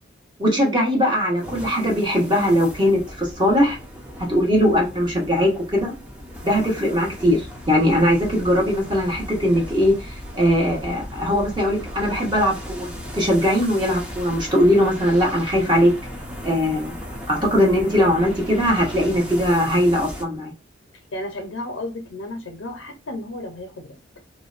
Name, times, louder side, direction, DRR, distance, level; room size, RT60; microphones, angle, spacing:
voice 1, 0.4-3.8 4.2-6.0 6.4-15.9 16.4-16.9 17.3-20.5, equal, 25° right, 0.9 m, -20 dB
sound 1, 1.4-20.2, equal, 5° right, 0.5 m, -36 dB
voice 2, 21.1-24.0, left 1 dB, 85° left, 0.6 m, -33 dB
2.6 x 2.1 x 2.4 m
head